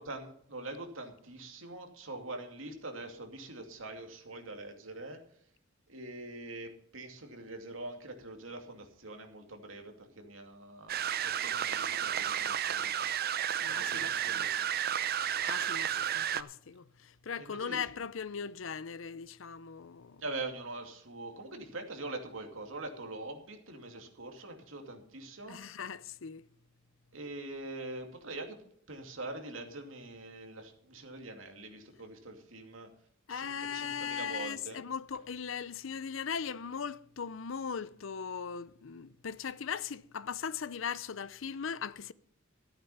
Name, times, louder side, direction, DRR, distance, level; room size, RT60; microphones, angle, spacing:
voice 1, 0.0-5.2 5.9-13.1 13.7-14.6 17.4-17.8 20.2-25.6 27.1-28.6 28.9-32.9 33.3-34.8, right 2 dB, 80° right, 2.5 m, -44 dB
sound 1, 10.9-16.4, right 9 dB, 50° right, 0.6 m, -32 dB
voice 2, 13.5-14.4 15.1-20.2 25.5-26.4 33.3-42.1, left 6 dB, 75° left, 0.6 m, -39 dB
14.0 x 8.9 x 5.6 m
head